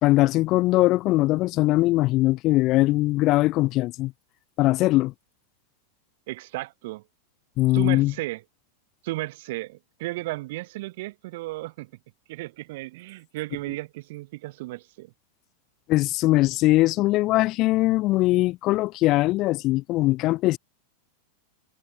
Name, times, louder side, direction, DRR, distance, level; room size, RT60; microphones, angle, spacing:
voice 1, 0.0-4.1 4.6-5.1 7.6-8.1 15.9-20.6, left 18 dB, 45° left, 0.5 m, -21 dB
voice 2, 6.3-7.0 7.7-8.4 9.0-11.9 12.3-15.1, right 20 dB, 65° right, 0.6 m, -34 dB
hypercardioid pair, 120°, 0 cm